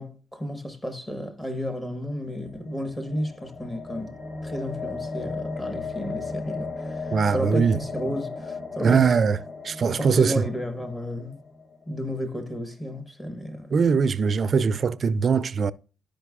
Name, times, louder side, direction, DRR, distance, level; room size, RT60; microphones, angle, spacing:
voice 1, 0.0-4.1 4.4-9.2 9.8-11.4 11.9-13.7, equal, 15° left, 1.1 m, -32 dB
Sci Fi Intro Reveal, 2.1-12.2, left 4 dB, 50° left, 1.3 m, -36 dB
voice 2, 7.1-7.8 8.8-9.4 9.6-10.5 13.7-15.7, right 5 dB, 45° right, 0.4 m, -21 dB
10.5 x 5.1 x 2.4 m
cardioid pair, 90°, 0 cm